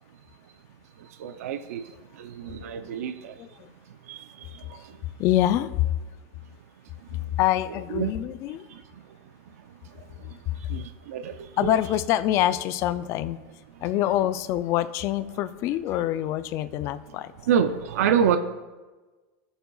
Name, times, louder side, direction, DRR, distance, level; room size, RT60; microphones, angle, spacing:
voice 1, 1.2-1.8 2.2-3.3 4.1-4.3 4.7-4.8 7.9-8.1 8.7-8.8 10.7-11.7 17.5-18.4, right 8 dB, 90° right, 9 dB, 0.6 m, -26 dB
voice 2, 3.4-3.7 4.7-4.8 5.2-5.9 7.1-8.6 10.5-10.6 11.6-13.4 13.8-17.3, left 13 dB, 35° left, 13 dB, 0.4 m, -25 dB
16.5 x 7.1 x 2.3 m, 1.2 s
supercardioid pair, 155°, 8 cm